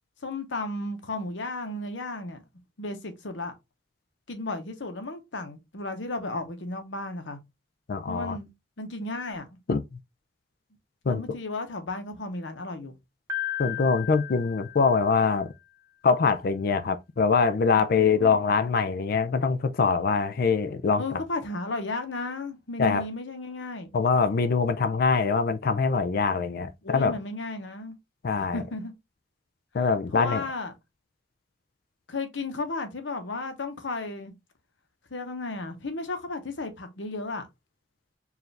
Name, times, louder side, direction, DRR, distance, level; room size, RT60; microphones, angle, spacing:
voice 1, 0.2-2.4 2.8-3.5 4.3-7.4 8.1-8.5 8.8-9.5 11.1-12.9 21.0-23.9 26.8-28.0 28.4-28.9 30.1-30.7 32.1-34.3 35.1-37.5, left 2 dB, 85° left, 0.9 m, -34 dB
voice 2, 7.9-8.4 9.7-10.0 11.1-11.2 13.6-15.5 16.0-21.2 22.8-23.0 23.9-27.2 28.2-28.6 29.7-30.4, left 5 dB, 55° left, 0.4 m, -24 dB
Piano, 13.3-15.4, left 11 dB, 15° right, 1.0 m, -35 dB
4.7 x 2.5 x 3.2 m
head